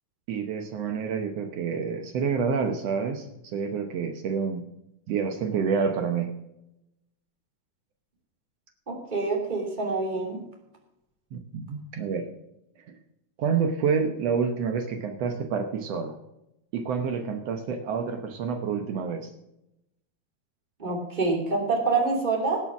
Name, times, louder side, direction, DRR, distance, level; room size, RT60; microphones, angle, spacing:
voice 1, 0.3-4.6 5.1-6.3 11.3-12.3 13.4-16.2 16.7-19.3, right 6 dB, 85° right, 6 dB, 1.4 m, -28 dB
voice 2, 8.9-10.4 20.8-22.6, right 3 dB, 15° right, 0 dB, 2.3 m, -26 dB
18.5 x 6.8 x 6.0 m, 0.88 s
omnidirectional pair, 4.3 m